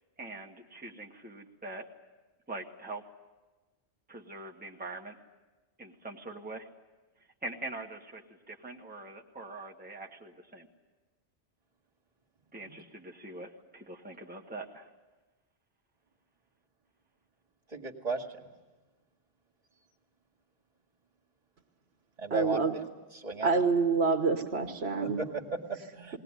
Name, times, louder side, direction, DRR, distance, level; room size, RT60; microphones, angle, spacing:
voice 1, 0.2-1.8 2.5-3.0 4.1-5.2 5.8-6.7 7.4-10.7 12.5-14.9, right 2 dB, 10° right, 0 dB, 1.3 m, -43 dB
voice 2, 17.7-18.3 22.2-22.6 23.1-23.6 25.0-26.2, right 3 dB, 35° right, -2 dB, 2.2 m, -35 dB
voice 3, 22.3-22.7 23.4-25.2, right 4 dB, 75° right, 5 dB, 1.5 m, -27 dB
20.5 x 18.5 x 9.7 m, 1.2 s
omnidirectional pair, 1.1 m